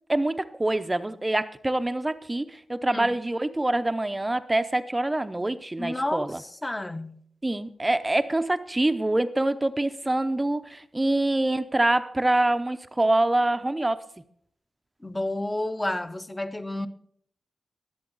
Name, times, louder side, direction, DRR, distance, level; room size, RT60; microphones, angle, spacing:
voice 1, 0.1-6.4 7.4-14.0, right 1 dB, 20° right, 0.7 m, -25 dB
voice 2, 5.8-6.3 6.6-7.2 15.0-16.9, left 1 dB, 15° left, 0.9 m, -30 dB
21.5 x 7.9 x 3.9 m
cardioid pair, 80°, 0 cm